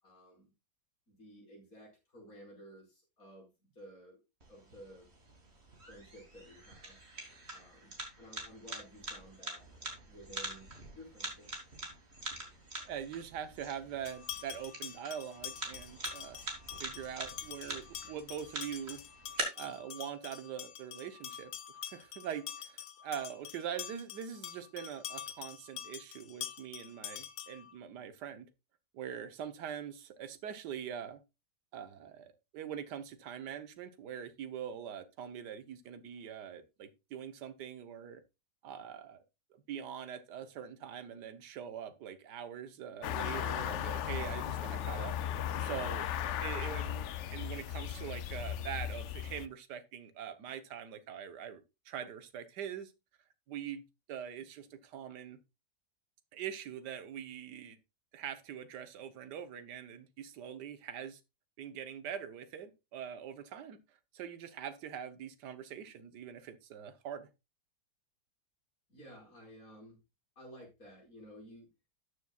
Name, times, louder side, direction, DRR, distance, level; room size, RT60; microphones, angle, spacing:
voice 1, 0.0-0.5 1.1-4.2 4.5-5.1 5.9-7.0 7.5-9.6 10.1-11.5 68.9-70.0 70.3-71.7, equal, 50° left, 5.1 m, -54 dB
sound 1, 4.4-19.4, right 2 dB, 35° right, 2.7 m, -45 dB
voice 2, 12.8-16.4 16.8-19.0 19.6-21.5 21.8-28.5 28.9-31.2 31.7-38.2 38.6-39.2 39.5-45.1 45.6-46.1 46.4-52.9 53.5-53.8 54.1-55.4 56.3-57.8 58.1-61.2 61.6-63.8 64.1-67.3, right 8 dB, 75° right, 1.6 m, -43 dB
sound 2, 14.1-27.7, left 10 dB, 70° left, 1.3 m, -46 dB
sound 3, 43.0-49.5, left 10 dB, 85° left, 0.6 m, -36 dB
13.0 x 6.9 x 2.3 m
omnidirectional pair, 1.8 m